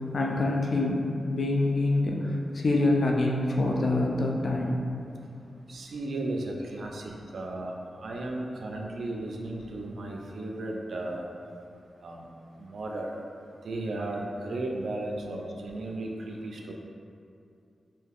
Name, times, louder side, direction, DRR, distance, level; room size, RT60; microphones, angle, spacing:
voice 1, 0.1-4.8, left 2 dB, 60° left, 0 dB, 0.4 m, -26 dB
voice 2, 5.7-11.2 12.0-12.3 12.6-13.1 13.6-16.7, right 2 dB, 75° right, 0 dB, 0.3 m, -35 dB
2.6 x 2.3 x 3.4 m, 2.5 s
cardioid pair, 60°, 0 cm